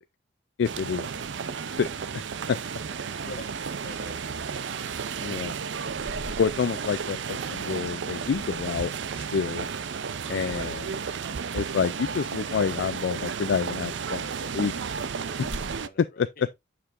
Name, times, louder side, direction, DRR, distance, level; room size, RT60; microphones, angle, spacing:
voice 1, 0.6-1.2 1.7-1.9 2.5-2.6 5.2-5.5 6.4-9.7 10.3-11.0 11.5-14.8 15.4-15.5 16.0-16.5, left 6 dB, 65° left, 0.3 m, -28 dB
sound 1, 0.6-15.9, right 6 dB, 70° right, 0.5 m, -33 dB
sound 2, 1.2-14.6, right 1 dB, ahead, 1.7 m, -59 dB
voice 2, 3.2-3.5 3.8-4.4 4.7-4.9 15.8-16.5, left 2 dB, 50° left, 1.2 m, -45 dB
sound 3, 5.8-7.6 8.3-8.9 13.5-13.6 14.0-14.1 14.5-14.6 15.0-15.1 15.4-15.8, left 1 dB, 25° right, 4.6 m, -43 dB
7.7 x 6.7 x 2.5 m
head